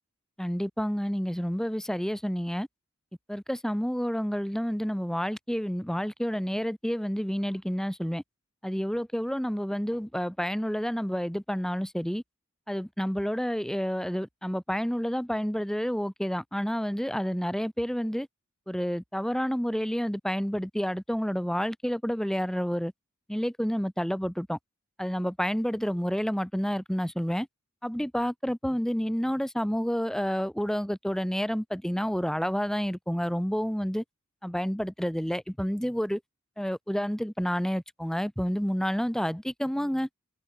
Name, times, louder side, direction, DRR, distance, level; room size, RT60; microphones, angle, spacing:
voice 1, 0.4-2.7 3.3-8.2 8.6-12.2 12.7-18.3 18.7-22.9 23.3-24.6 25.0-27.5 27.8-34.0 34.4-36.2 36.6-40.1, equal, 5° left, 1.2 m, -29 dB
head